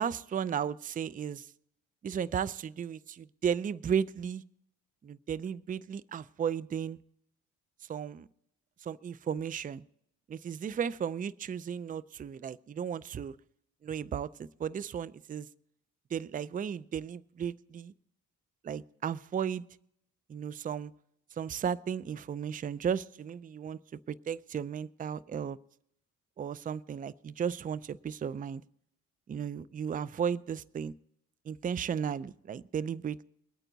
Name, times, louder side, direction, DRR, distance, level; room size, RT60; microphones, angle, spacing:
voice 1, 0.0-1.5 2.0-4.4 5.0-7.0 7.8-8.3 8.8-9.8 10.3-13.3 13.8-15.5 16.1-17.9 18.6-19.6 20.3-20.9 21.3-25.6 26.4-28.6 29.3-30.9 31.4-33.2, right 7 dB, 30° right, 19 dB, 0.4 m, -35 dB
22.0 x 9.2 x 4.0 m, 0.73 s
cardioid pair, 90°, 30 cm